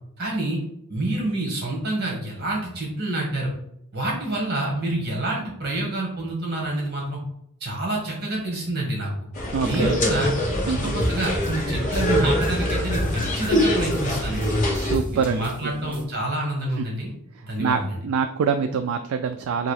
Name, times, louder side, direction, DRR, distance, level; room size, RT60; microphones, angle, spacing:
voice 1, 0.2-0.6 0.9-3.5 3.9-7.2 7.6-9.1 9.6-10.3 10.7-14.6 15.1-17.1 17.4-18.0, right 1 dB, 50° right, -1 dB, 1.8 m, -27 dB
sound 1, 9.3-15.0, equal, 40° left, 1.1 m, -24 dB
voice 2, 9.5-10.0 10.7-11.0 14.7-15.4 16.8-16.9 17.6-19.7, right 6 dB, 75° right, 7 dB, 0.3 m, -25 dB
sound 2, 11.0-16.0, equal, 10° right, 0.9 m, -32 dB
3.8 x 2.9 x 4.8 m, 0.73 s
head